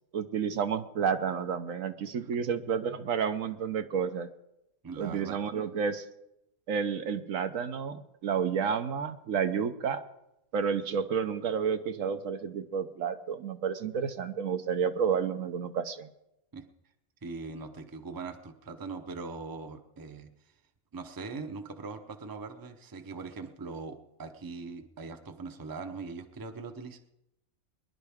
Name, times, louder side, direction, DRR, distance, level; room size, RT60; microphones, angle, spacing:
voice 1, 0.1-4.3 5.0-6.0 6.7-10.0 10.5-16.1, right 7 dB, 70° right, 8 dB, 1.1 m, -30 dB
voice 2, 4.8-5.4 16.5-16.6 17.2-20.3 20.9-27.0, right 4 dB, 20° right, 6 dB, 0.7 m, -41 dB
23.5 x 10.5 x 3.6 m, 0.85 s
omnidirectional pair, 1.5 m